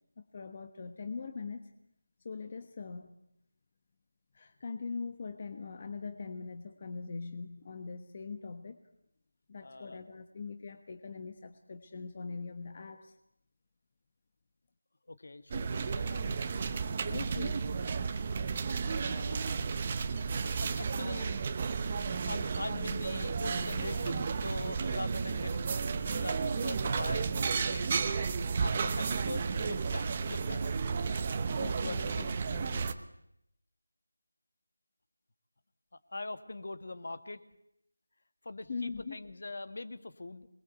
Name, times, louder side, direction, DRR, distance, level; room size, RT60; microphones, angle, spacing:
voice 1, 0.2-1.7 2.2-3.2 4.3-8.8 9.5-13.2 17.1-17.6 31.6-32.9 38.7-39.2, left 4 dB, 25° left, 7 dB, 1.2 m, -42 dB
voice 2, 9.6-10.0 15.1-16.2 19.1-19.4 20.1-21.5 21.8-28.0 28.6-30.7 31.8-32.3 35.9-37.4 38.4-40.5, left 2 dB, 45° left, 11 dB, 1.9 m, -42 dB
sound 1, 15.5-32.9, right 5 dB, 20° right, 0.9 m, -33 dB
27.0 x 21.0 x 8.1 m, 0.78 s
figure-of-eight pair, 180°, 0 cm